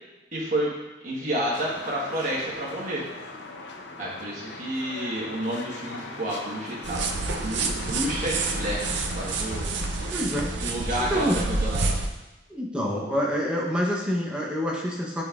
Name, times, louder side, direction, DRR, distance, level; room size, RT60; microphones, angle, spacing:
voice 1, 0.3-0.7 1.0-3.0 4.0-9.6 10.6-12.0, right 1 dB, 40° right, -6 dB, 1.3 m, -30 dB
sound 1, 1.5-10.1, left 3 dB, 70° left, 0.6 m, -40 dB
sound 2, 6.8-12.1, right 3 dB, 80° right, 0.5 m, -28 dB
voice 2, 10.1-10.5 11.1-11.4 12.5-15.2, equal, 5° right, -3 dB, 0.8 m, -27 dB
8.3 x 5.2 x 2.4 m, 1.1 s
head